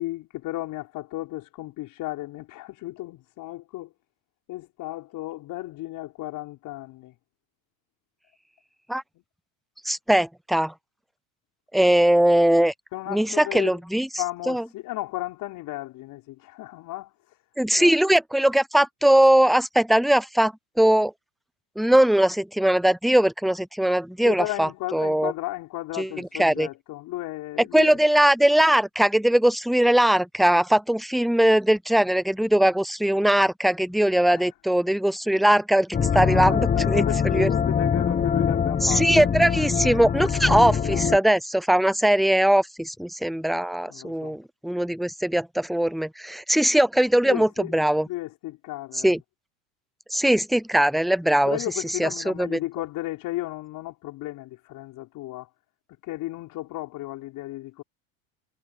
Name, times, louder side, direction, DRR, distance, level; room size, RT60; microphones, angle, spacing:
voice 1, 0.0-3.9 4.5-7.1 9.2-9.3 12.9-13.8 14.2-17.4 17.8-18.0 24.2-28.0 34.3-34.5 36.4-39.3 40.3-41.1 43.9-44.4 47.2-47.7 48.1-49.1 51.5-55.5 56.0-57.8, left 17 dB, 55° left, 5.4 m, -34 dB
voice 2, 9.8-10.7 11.7-12.7 13.1-14.1 14.5-14.6 17.6-21.1 21.8-25.3 26.0-26.7 27.7-37.5 38.8-48.1 49.0-49.2 50.1-51.6 52.0-52.6, right 1 dB, ahead, 0.5 m, -20 dB
sound 1, 35.9-41.2, left 7 dB, 20° left, 1.0 m, -23 dB
supercardioid pair, 100°, 39 cm